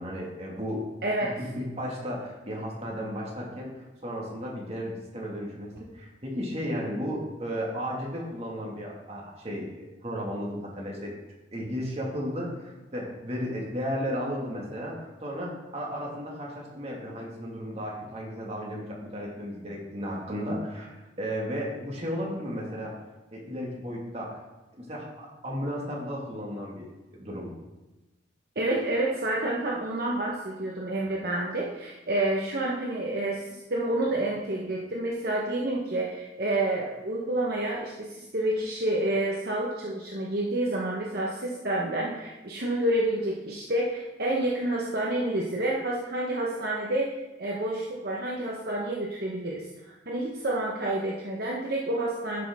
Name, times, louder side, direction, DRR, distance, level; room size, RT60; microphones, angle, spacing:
voice 1, 0.0-0.9 1.4-11.1 11.5-22.9 23.3-24.4 24.7-27.5, equal, 35° right, -3 dB, 1.9 m, -34 dB
voice 2, 1.0-1.4 28.6-52.4, right 1 dB, 60° right, -3 dB, 1.0 m, -29 dB
10.5 x 6.2 x 3.6 m, 1.1 s
head